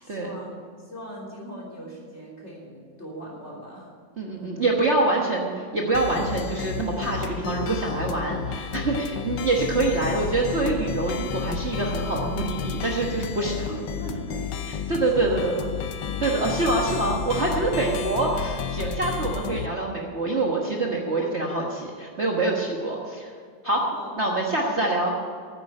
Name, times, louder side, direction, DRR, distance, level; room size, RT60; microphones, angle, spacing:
voice 1, 0.0-3.9 4.4-4.6 13.0-14.6 14.9-15.5 16.0-16.5 22.8-22.9 23.7-24.4, right 1 dB, 35° left, -4 dB, 3.7 m, -40 dB
voice 2, 4.2-13.5 14.7-15.5 16.2-23.3 23.6-23.8 24.2-25.1, right 2 dB, 40° right, -1 dB, 1.4 m, -25 dB
sound 1, 5.9-19.7, left 7 dB, 75° left, 1.3 m, -31 dB
9.7 x 8.7 x 9.8 m, 2.1 s
omnidirectional pair, 2.0 m